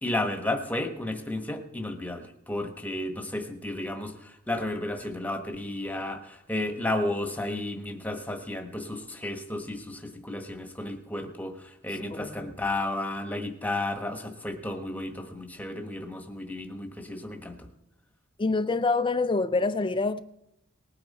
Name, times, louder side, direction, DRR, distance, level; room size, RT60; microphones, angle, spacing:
voice 1, 0.0-17.6, left 1 dB, 5° left, 1.3 m, -33 dB
voice 2, 12.1-12.5 18.4-20.2, left 3 dB, 25° left, 0.4 m, -26 dB
19.5 x 8.9 x 4.3 m
head